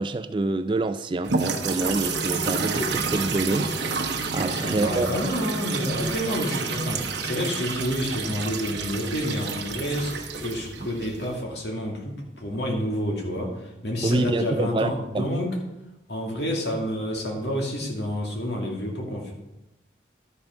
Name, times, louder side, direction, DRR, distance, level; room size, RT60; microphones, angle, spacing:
voice 1, 0.0-5.1 14.0-15.3, right 2 dB, 25° right, 12 dB, 0.3 m, -27 dB
sound 1, 1.2-11.4, right 4 dB, 70° right, 1.1 m, -29 dB
voice 2, 4.4-15.6 16.1-19.3, equal, 65° left, -1 dB, 2.4 m, -29 dB
12.0 x 5.5 x 5.7 m, 0.93 s
head